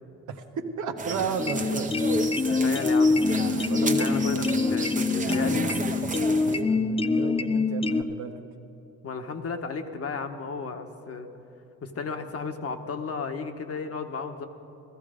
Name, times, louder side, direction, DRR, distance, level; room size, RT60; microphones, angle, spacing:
voice 1, 0.3-1.9 3.6-4.3 6.2-8.4, right 6 dB, 75° right, 5 dB, 1.2 m, -33 dB
sound 1, 1.0-6.6, right 3 dB, 25° right, 1.0 m, -33 dB
sound 2, 1.4-8.0, left 3 dB, 20° left, 0.4 m, -25 dB
voice 2, 2.5-3.2 4.0-5.6 9.0-11.3 11.8-14.5, left 5 dB, 50° left, 6 dB, 1.3 m, -34 dB
15.5 x 14.0 x 5.1 m, 2.8 s
cardioid pair, 90°, 30 cm